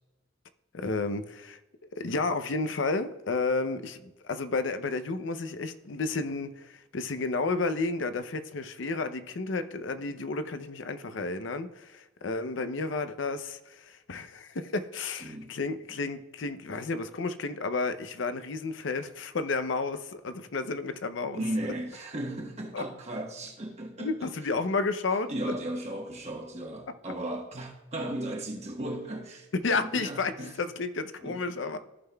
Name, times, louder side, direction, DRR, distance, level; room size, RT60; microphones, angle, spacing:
voice 1, 0.7-1.6 1.9-21.4 22.7-22.8 24.0-25.3 29.6-31.8, left 3 dB, 75° left, 0.6 m, -32 dB
voice 2, 15.2-15.5 21.3-24.3 25.3-30.5 31.2-31.4, right 1 dB, 35° right, 1.2 m, -36 dB
15.0 x 5.6 x 2.3 m
head